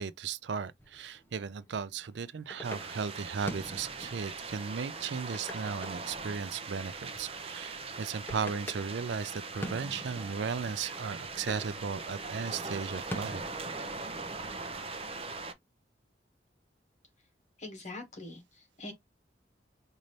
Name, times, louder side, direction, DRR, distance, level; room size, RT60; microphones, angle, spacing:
voice 1, 0.0-13.4, right 6 dB, 75° right, 0.4 m, -36 dB
sound 1, 0.8-14.9, equal, 10° left, 0.8 m, -47 dB
sound 2, 2.6-15.5, right 3 dB, 35° right, 0.6 m, -41 dB
voice 2, 17.6-18.9, left 2 dB, 40° left, 1.4 m, -43 dB
5.2 x 2.7 x 3.1 m
head